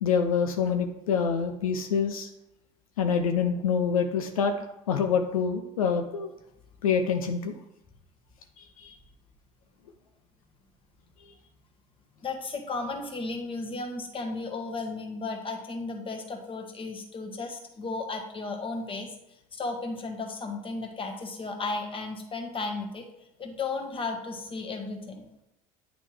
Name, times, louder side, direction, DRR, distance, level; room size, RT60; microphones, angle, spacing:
voice 1, 0.0-2.3 3.0-4.5 4.9-6.3 6.8-7.5 8.6-9.0, left 6 dB, 85° left, 6 dB, 0.5 m, -26 dB
voice 2, 12.2-19.1 19.5-23.0 23.4-25.3, left 3 dB, 30° left, 3 dB, 1.3 m, -34 dB
8.9 x 3.3 x 3.3 m, 0.89 s
hypercardioid pair, 70°, 18 cm